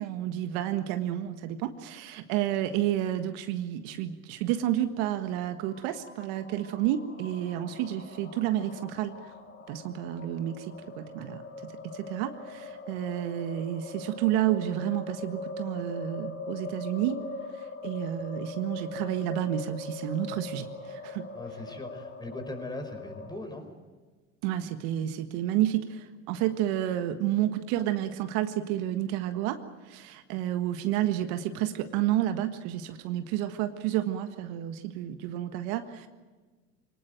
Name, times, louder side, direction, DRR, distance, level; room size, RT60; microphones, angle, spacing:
voice 1, 0.0-9.1 9.7-17.2 17.8-21.2 24.4-29.6 29.9-36.1, right 12 dB, 70° right, 8 dB, 1.7 m, -30 dB
sound 1, 5.5-23.4, left 3 dB, 30° left, 3.5 m, -41 dB
voice 2, 21.3-23.7, left 1 dB, 10° left, 6 dB, 5.0 m, -40 dB
23.5 x 19.0 x 9.2 m, 1.3 s
hypercardioid pair, 90°, 37 cm